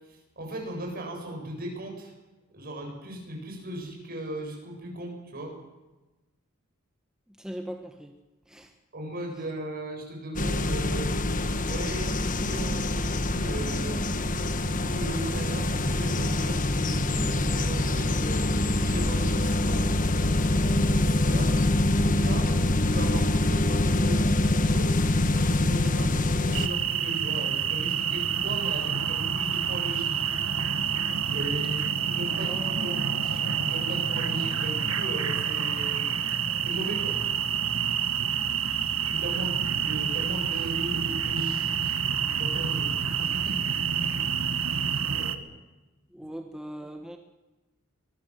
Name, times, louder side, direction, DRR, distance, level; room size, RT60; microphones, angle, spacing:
voice 1, 0.4-2.1 2.5-5.5 8.9-14.0 14.6-18.4 18.7-21.5 22.0-24.9 25.3-30.2 31.3-36.0 36.6-37.3 38.9-41.9 42.3-42.9 43.2-43.6 44.0-44.7 45.1-45.5, right 1 dB, 45° right, 2 dB, 7.8 m, -37 dB
voice 2, 7.4-8.1 8.5-8.7 32.3-33.0 46.1-47.2, equal, 5° right, 4 dB, 1.3 m, -39 dB
sound 1, 10.4-26.7, left 2 dB, 40° left, 1.4 m, -25 dB
sound 2, 26.5-45.4, right 7 dB, 80° right, 1.6 m, -28 dB
24.0 x 21.0 x 7.9 m, 1.1 s
head